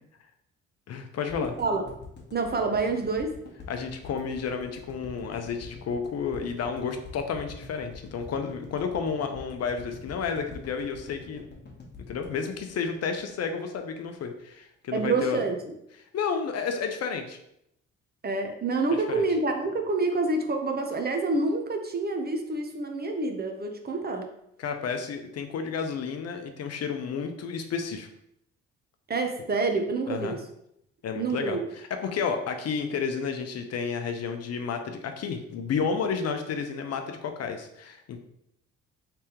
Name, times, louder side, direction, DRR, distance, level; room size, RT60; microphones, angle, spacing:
voice 1, 0.9-1.5 3.7-11.4 12.1-15.4 16.1-17.4 19.1-19.2 24.6-28.1 30.1-30.4 31.0-38.2, left 6 dB, 55° left, 6 dB, 0.6 m, -31 dB
sound 1, 1.3-13.4 13.7-13.8 14.0-14.1, left 4 dB, 35° left, 1.1 m, -45 dB
voice 2, 1.4-1.8 2.3-3.3 14.9-15.6 18.2-24.3 29.1-30.4 31.2-31.7, right 3 dB, 30° right, 4 dB, 0.7 m, -27 dB
3.3 x 3.3 x 3.0 m, 0.78 s
supercardioid pair, 55°, 31 cm